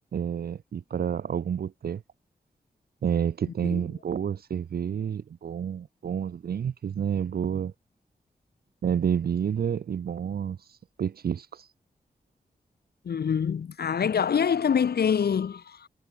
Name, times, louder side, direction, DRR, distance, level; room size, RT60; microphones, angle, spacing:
voice 1, 0.0-2.0 3.0-7.7 8.8-11.7, right 8 dB, 75° right, 0.6 m, -29 dB
voice 2, 13.0-15.9, left 7 dB, 80° left, 1.1 m, -25 dB
wide cardioid pair, 120°, 16 cm